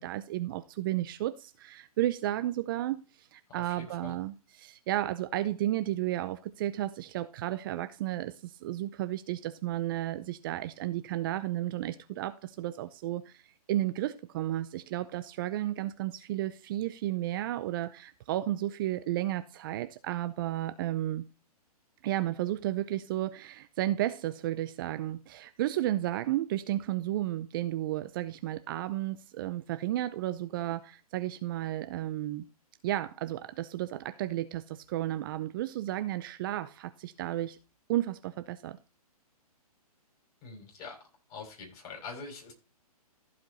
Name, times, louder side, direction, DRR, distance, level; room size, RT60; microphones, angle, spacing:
voice 1, 0.0-21.3 22.0-32.4 32.8-37.6 37.9-38.8, right 14 dB, 35° right, 0.6 m, -33 dB
voice 2, 3.5-4.2 40.4-41.0 41.3-42.5, left 4 dB, 30° left, 6.0 m, -44 dB
15.0 x 5.2 x 4.1 m
hypercardioid pair, 140°, 20 cm